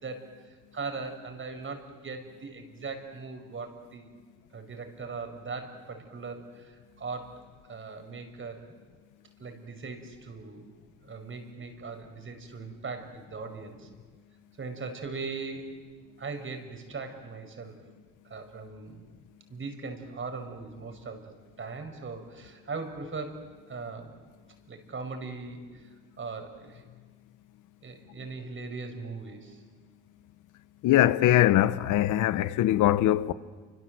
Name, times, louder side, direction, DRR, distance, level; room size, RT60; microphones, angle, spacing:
voice 1, 0.0-4.1 4.5-8.7 9.4-10.7 11.0-13.9 14.6-15.7 16.2-17.8 18.3-19.1 19.5-21.3 21.6-23.4 23.7-24.2 24.7-26.8 27.8-29.6, right 4 dB, 40° right, 5.6 m, -39 dB
voice 2, 30.8-33.3, left 13 dB, 85° left, 1.0 m, -22 dB
29.0 x 25.5 x 7.9 m
cardioid pair, 90°, 30 cm